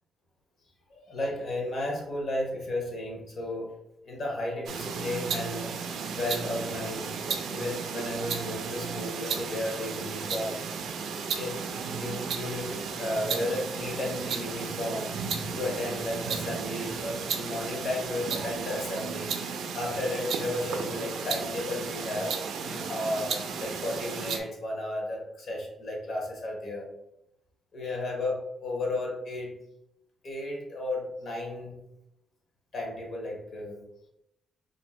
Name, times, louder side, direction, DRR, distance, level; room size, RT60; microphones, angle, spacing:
voice 1, 0.9-3.7 4.0-5.7 6.1-10.6 11.3-11.6 12.0-15.1 15.5-19.3 19.7-22.3 22.6-26.9 27.7-29.5 30.2-31.8 32.7-33.8, left 1 dB, 45° left, -1 dB, 0.9 m, -33 dB
sound 1, 4.7-24.4, right 6 dB, 70° right, 0.4 m, -34 dB
2.7 x 2.5 x 4.2 m, 0.85 s
wide cardioid pair, 175°, 0 cm